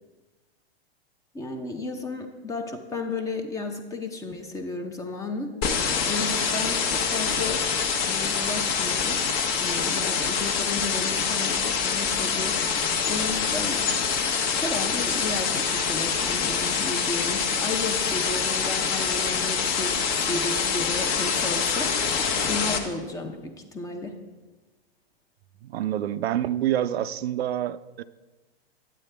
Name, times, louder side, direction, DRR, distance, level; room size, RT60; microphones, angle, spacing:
voice 1, 1.3-7.6 8.1-9.2 9.6-13.9 14.6-21.9 22.5-24.2, left 3 dB, 10° left, 5 dB, 0.6 m, -33 dB
sound 1, 5.6-22.8, left 6 dB, 35° left, 1.0 m, -25 dB
voice 2, 25.6-28.0, right 11 dB, 75° right, 14 dB, 0.5 m, -27 dB
8.9 x 8.9 x 3.3 m, 1.2 s
hypercardioid pair, 130°, 32 cm